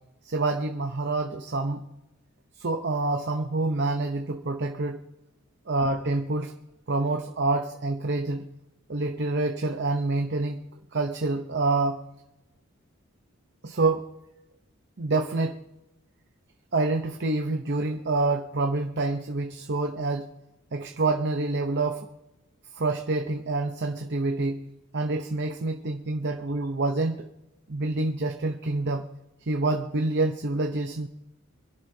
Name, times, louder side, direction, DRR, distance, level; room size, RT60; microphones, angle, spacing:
voice 1, 0.3-1.9 2.6-5.0 5.7-6.5 6.9-8.5 8.9-10.7 10.9-12.0 13.6-14.1 15.0-15.6 16.7-20.3 20.7-22.1 22.7-24.7 24.9-27.3 27.7-29.1 29.5-31.1, right 2 dB, 50° right, 5 dB, 0.8 m, -27 dB
25.0 x 11.0 x 2.8 m, 0.91 s
head